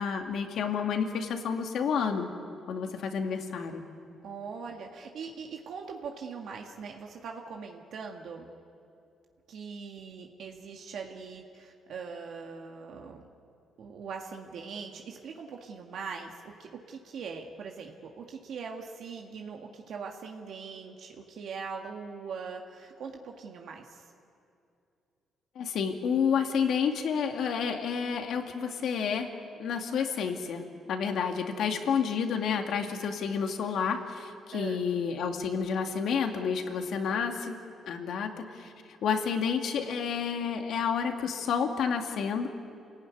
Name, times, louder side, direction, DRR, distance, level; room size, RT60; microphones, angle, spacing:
voice 1, 0.0-2.3 2.7-3.8 25.6-29.3 29.6-37.6 37.9-38.7 39.0-42.5, left 6 dB, 70° left, 4 dB, 2.3 m, -30 dB
voice 2, 4.2-8.5 9.5-13.2 13.8-24.1 34.5-34.8, right 5 dB, 70° right, 1 dB, 1.9 m, -41 dB
27.5 x 17.0 x 9.5 m, 2.5 s
cardioid pair, 90°, 0 cm